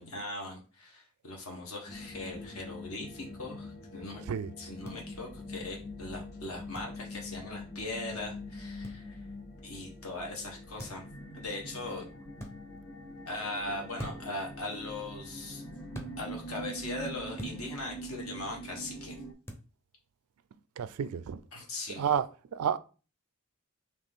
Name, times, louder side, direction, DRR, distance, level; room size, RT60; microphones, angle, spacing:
voice 1, 0.0-4.2 4.6-9.2 9.6-11.1 11.3-12.1 13.3-15.7 16.2-19.2 21.5-22.0, left 2 dB, 70° left, 1.4 m, -40 dB
sound 1, 1.9-19.3, equal, 55° left, 1.0 m, -44 dB
sound 2, 4.8-5.0 6.7-6.9 8.8-9.0 10.8-11.1 12.4-12.5 14.0-14.4 15.9-16.1 17.4-17.6 19.5-19.7, equal, 10° left, 0.6 m, -42 dB
voice 2, 20.8-21.4 22.0-22.2 22.5-22.8, right 8 dB, 75° right, 0.3 m, -30 dB
4.1 x 2.8 x 3.5 m
head